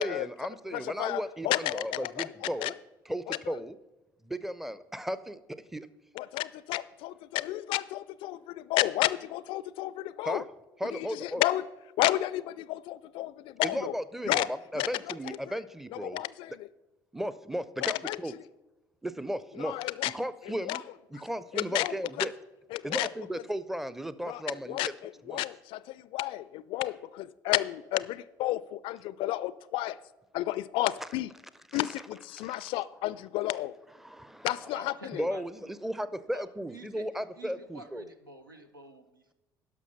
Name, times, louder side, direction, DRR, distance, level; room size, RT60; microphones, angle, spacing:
voice 1, 0.0-2.7 3.1-3.8 4.2-5.9 10.2-10.4 10.8-11.4 13.6-14.4 14.7-16.2 17.1-18.3 19.0-19.7 20.1-20.8 21.1-22.3 22.8-24.9 25.3-25.4 31.7-31.8 32.4-32.7 34.0-38.1, equal, 5° right, 0.5 m, -35 dB
voice 2, 0.7-2.7 3.3-3.6 6.2-10.4 10.9-11.7 12.0-13.9 14.3-14.5 14.8-15.4 15.9-16.7 17.8-18.2 19.6-20.1 20.6-20.8 21.5-22.3 22.7-23.1 24.2-30.0 30.3-31.3 31.7-33.7 34.4-35.3, left 16 dB, 55° left, 0.4 m, -32 dB
voice 3, 34.7-35.7 36.3-36.4 36.7-39.3, right 2 dB, 90° right, 0.7 m, -49 dB
11.0 x 6.0 x 5.6 m
figure-of-eight pair, 55°, 11 cm